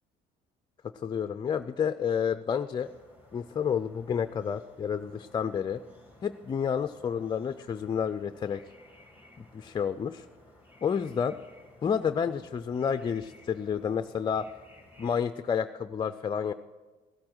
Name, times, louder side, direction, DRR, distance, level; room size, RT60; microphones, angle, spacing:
voice 1, 1.0-2.9 3.3-5.8 6.2-8.6 9.5-10.2 10.8-11.4 11.8-14.5 15.0-16.5, left 7 dB, 25° left, 10 dB, 0.4 m, -30 dB
sound 1, 2.8-15.2, left 1 dB, 10° right, 2.6 m, -57 dB
16.0 x 8.6 x 6.2 m, 1.3 s
cardioid pair, 110°, 17 cm